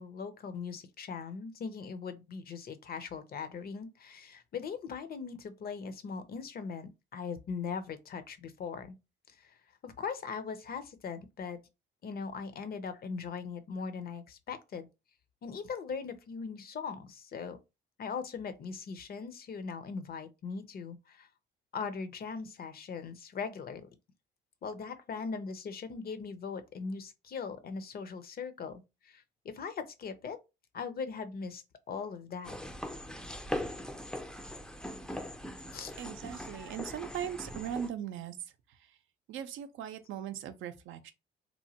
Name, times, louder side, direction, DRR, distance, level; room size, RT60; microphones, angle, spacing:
voice 1, 0.0-9.0 9.3-9.6 9.8-11.6 12.0-14.9 15.4-17.6 18.0-21.3 21.7-23.9 24.6-30.4 30.7-32.5 35.7-36.0, left 5 dB, 50° left, 0.6 m, -40 dB
sound 1, 32.4-37.9, left 1 dB, 5° left, 0.4 m, -40 dB
voice 2, 36.0-38.4 38.7-39.0 39.3-41.1, right 9 dB, 80° right, 0.5 m, -39 dB
3.0 x 2.1 x 2.8 m
cardioid pair, 90°, 20 cm